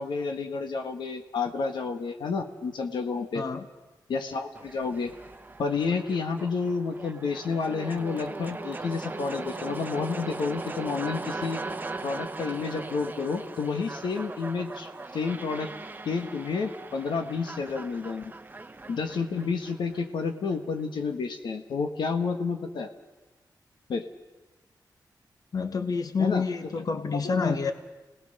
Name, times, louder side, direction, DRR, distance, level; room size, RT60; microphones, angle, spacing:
voice 1, 0.0-3.4 4.1-5.1 5.6-11.6 12.0-15.7 16.0-18.3 18.9-22.9 23.9-24.0 26.2-26.4 27.2-27.6, left 4 dB, 90° left, 5 dB, 1.6 m, -30 dB
voice 2, 3.3-3.7 25.5-27.7, left 5 dB, 55° left, 7 dB, 1.6 m, -28 dB
sound 1, 4.5-20.6, right 3 dB, 25° right, 0.9 m, -39 dB
29.0 x 19.0 x 6.7 m, 1.2 s
wide cardioid pair, 90°, 8 cm